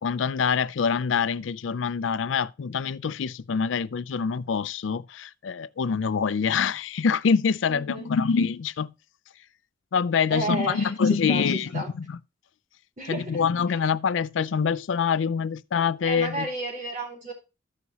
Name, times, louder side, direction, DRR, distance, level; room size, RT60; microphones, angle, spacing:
voice 1, 0.0-8.9 9.9-12.1 13.1-16.5, left 6 dB, 90° left, 0.4 m, -25 dB
voice 2, 7.7-8.1 10.3-11.9 13.0-13.8 16.0-17.3, right 1 dB, 40° right, 4.3 m, -33 dB
14.0 x 5.5 x 2.9 m
head